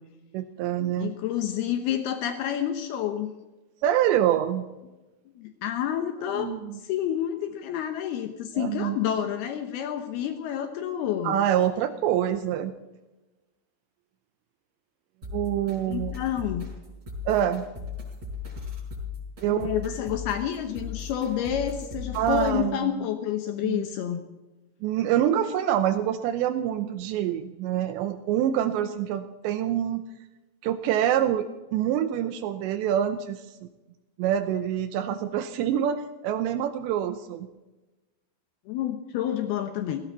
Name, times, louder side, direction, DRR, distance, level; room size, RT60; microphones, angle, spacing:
voice 1, 0.3-1.1 3.8-4.6 6.3-6.8 8.6-9.0 11.2-12.7 15.3-16.1 17.3-17.6 19.4-19.8 22.1-23.0 23.6-23.9 24.8-30.0 30.6-33.5 34.2-37.5, right 10 dB, 90° right, 10 dB, 2.5 m, -26 dB
voice 2, 1.0-3.4 5.4-6.5 6.8-11.4 15.9-16.7 19.5-24.2 38.7-40.0, left 10 dB, 85° left, 6 dB, 2.2 m, -29 dB
sound 1, 15.2-22.6, left 5 dB, 25° right, 5.6 m, -37 dB
18.5 x 17.0 x 4.0 m, 1.1 s
omnidirectional pair, 6.0 m